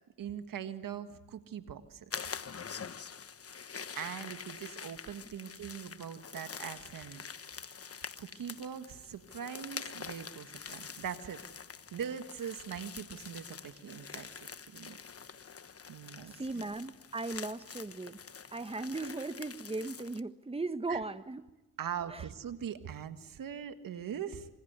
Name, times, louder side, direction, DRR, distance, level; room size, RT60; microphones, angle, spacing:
voice 1, 0.2-2.0 4.0-7.2 8.2-11.4 11.9-15.0 15.9-16.6 20.9-21.0 21.8-24.5, right 8 dB, 85° right, 9 dB, 1.7 m, -41 dB
sound 1, 2.1-20.2, left 6 dB, 45° left, 1.2 m, -46 dB
voice 2, 16.3-18.2 18.5-21.4 22.1-22.2, right 3 dB, 20° right, 11 dB, 1.3 m, -37 dB
26.5 x 25.5 x 8.1 m, 1.0 s
cardioid pair, 70°, 32 cm